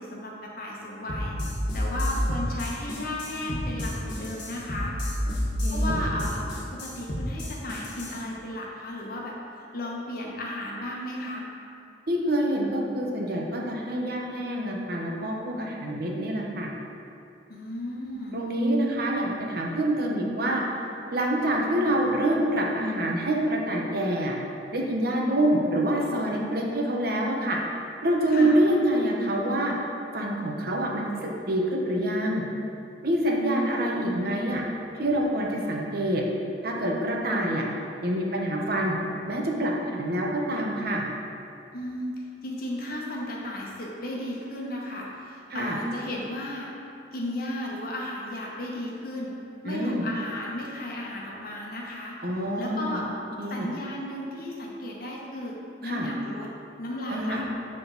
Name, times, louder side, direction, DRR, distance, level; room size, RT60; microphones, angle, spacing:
voice 1, 0.0-1.3 1.7-5.0 5.7-6.5 6.7-9.4 9.7-11.4 17.5-18.4 28.3-28.7 33.7-34.4 41.7-46.7 47.1-49.4 49.6-52.2 52.6-53.1 53.5-56.5 56.8-57.4, left 1 dB, 55° left, -2 dB, 1.2 m, -34 dB
sound 1, 1.1-8.2, equal, 70° left, 1.4 m, -30 dB
voice 2, 5.6-6.1 12.1-16.7 18.3-20.6 21.1-24.3 24.7-27.6 28.0-29.7 30.1-32.5 33.0-34.6 35.0-36.2 36.6-37.6 38.0-39.0 39.3-41.0 45.5-45.8 49.6-50.0 52.2-53.0 53.4-53.7 55.8-56.1 57.1-57.4, right 1 dB, 55° right, -1 dB, 1.0 m, -26 dB
10.5 x 3.8 x 3.9 m, 2.7 s
head